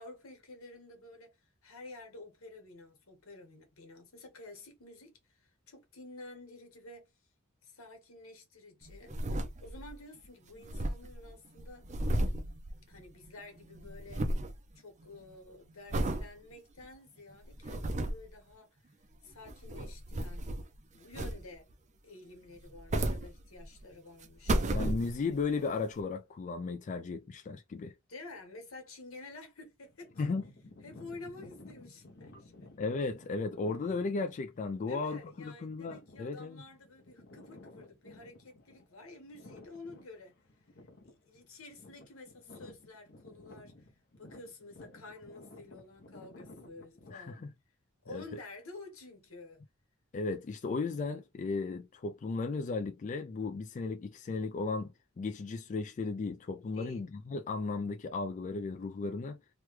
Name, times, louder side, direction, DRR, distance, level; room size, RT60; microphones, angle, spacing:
voice 1, 0.0-7.1 7.6-9.1 9.6-11.9 12.9-14.3 14.7-18.8 19.2-20.6 20.9-21.7 22.0-24.6 28.1-30.2 30.8-32.7 34.9-40.4 41.0-43.9 44.2-47.4 48.0-49.6 56.7-57.1, left 2 dB, 85° left, 1.3 m, -50 dB
sound 1, 8.9-10.0 10.2-10.3 10.5-13.3 13.6-14.6 15.0-15.3 15.9-16.3 16.8-16.9 17.4-18.3 19.3-20.8 21.1-21.7 22.6-23.8 24.2-25.4 26.0-26.1, right 1 dB, 35° right, 0.4 m, -34 dB
voice 2, 24.7-27.9 30.2-30.4 32.8-36.6 47.1-47.4 48.1-48.2 50.1-59.4, left 4 dB, 35° left, 0.3 m, -35 dB
sound 2, 29.8-47.5, left 2 dB, 55° left, 0.8 m, -54 dB
3.1 x 2.2 x 3.0 m
head